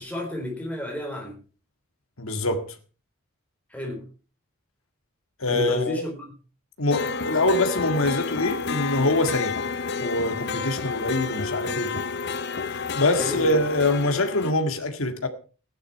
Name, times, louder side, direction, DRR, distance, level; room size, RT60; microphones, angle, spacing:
voice 1, 0.0-1.4 3.7-4.1 5.5-6.3 13.2-13.6, left 1 dB, 5° left, 4.1 m, -31 dB
voice 2, 2.2-2.6 5.4-6.0 6.8-9.6 10.0-12.0 12.7-15.3, left 2 dB, 75° left, 1.8 m, -24 dB
sound 1, 6.9-14.5, left 5 dB, 50° left, 0.6 m, -30 dB
15.5 x 10.5 x 4.6 m
head